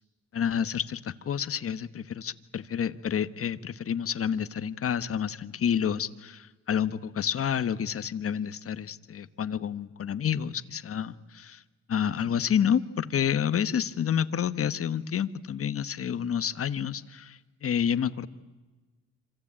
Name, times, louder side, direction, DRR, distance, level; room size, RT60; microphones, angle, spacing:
voice 1, 0.3-11.6 11.9-18.3, left 8 dB, 50° left, 13 dB, 1.2 m, -29 dB
26.0 x 26.0 x 8.8 m, 1.2 s
cardioid pair, 90°, 30 cm